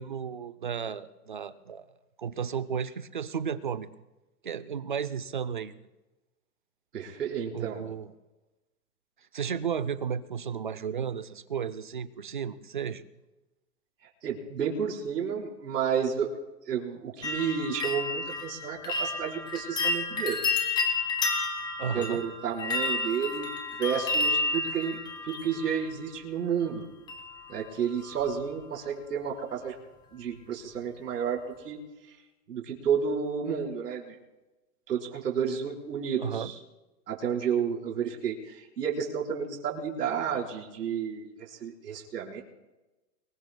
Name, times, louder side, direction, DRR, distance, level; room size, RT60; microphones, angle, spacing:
voice 1, 0.0-1.9 2.2-3.9 4.4-5.7 7.5-8.1 9.3-13.1 21.8-22.2 36.2-36.5, right 7 dB, 35° right, 15 dB, 0.4 m, -33 dB
voice 2, 6.9-7.8 14.0-16.3 16.7-20.4 21.9-23.5 23.8-25.0 25.2-26.8 27.5-29.8 30.1-31.8 32.1-32.2 32.5-34.2 34.9-36.5 37.1-42.4, right 7 dB, 90° right, -1 dB, 4.6 m, -31 dB
sound 1, 17.2-26.2 27.1-27.6 27.9-28.4 28.7-28.8, left 3 dB, 10° left, 1.3 m, -31 dB
24.0 x 21.5 x 2.2 m, 1.0 s
hypercardioid pair, 165°, 47 cm